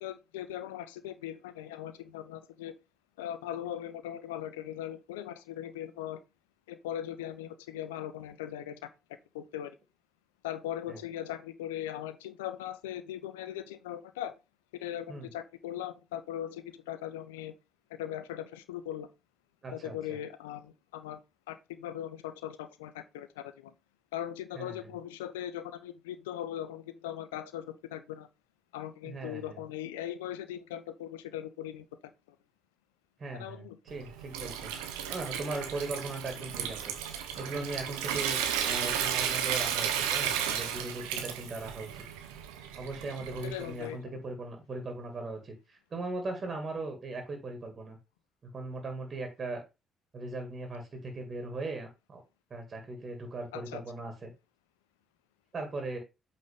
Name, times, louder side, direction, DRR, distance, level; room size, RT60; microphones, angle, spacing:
voice 1, 0.0-2.8 3.2-6.2 6.7-8.9 9.3-9.7 10.4-14.3 14.8-17.5 17.9-19.1 19.7-21.2 21.5-23.7 24.1-28.3 28.7-31.8 33.3-33.8 43.4-44.2 53.5-53.8, left 11 dB, 80° left, 0.5 m, -39 dB
voice 2, 19.6-20.2 24.6-24.9 29.0-29.6 33.2-34.7 35.1-36.9 37.4-42.0 42.8-48.0 48.5-49.6 50.1-52.2 52.5-54.3 55.5-56.0, right 2 dB, 40° right, 2.2 m, -39 dB
Water tap faucet / Sink (filling or washing) / Trickle dribble, 33.9-43.8, right 8 dB, 75° right, 1.0 m, -34 dB
8.1 x 4.1 x 3.6 m
figure-of-eight pair, 45°, 0 cm